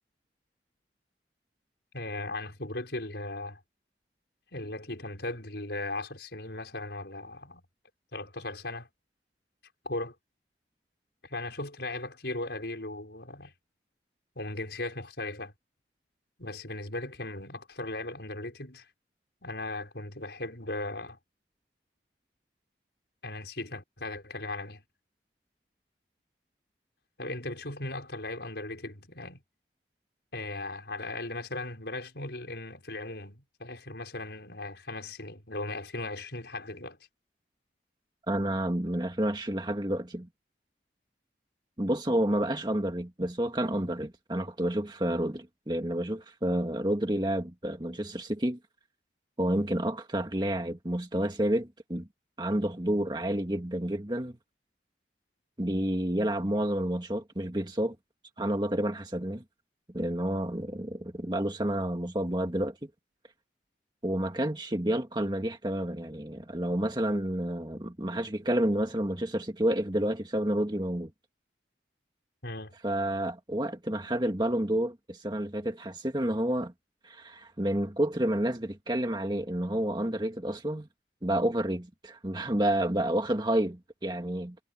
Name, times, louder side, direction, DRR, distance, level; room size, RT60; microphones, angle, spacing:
voice 1, 1.9-3.6 4.5-7.6 8.1-8.9 9.8-10.2 11.2-13.5 14.4-15.5 16.4-18.9 19.4-21.2 23.2-24.8 27.2-29.4 30.3-37.0 72.4-72.8, left 2 dB, 70° left, 5.3 m, -37 dB
voice 2, 38.3-40.3 41.8-48.6 49.4-52.1 52.4-54.4 55.6-58.0 58.4-59.4 59.9-62.9 64.0-71.1 72.8-76.7 77.0-80.9 81.2-84.6, right 1 dB, 25° right, 1.8 m, -29 dB
head